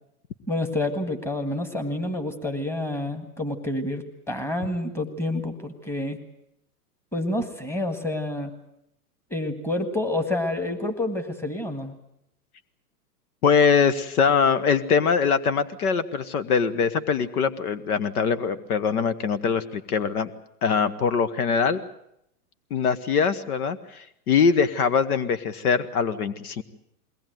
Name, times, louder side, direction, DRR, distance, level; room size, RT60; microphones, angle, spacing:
voice 1, 0.5-6.2 7.1-8.5 9.3-11.9, left 1 dB, 5° left, 7 dB, 1.7 m, -28 dB
voice 2, 13.4-20.3 20.6-21.8 22.7-26.6, left 6 dB, 70° left, 14 dB, 1.4 m, -22 dB
22.0 x 18.0 x 9.2 m, 0.77 s
hypercardioid pair, 135°, 47 cm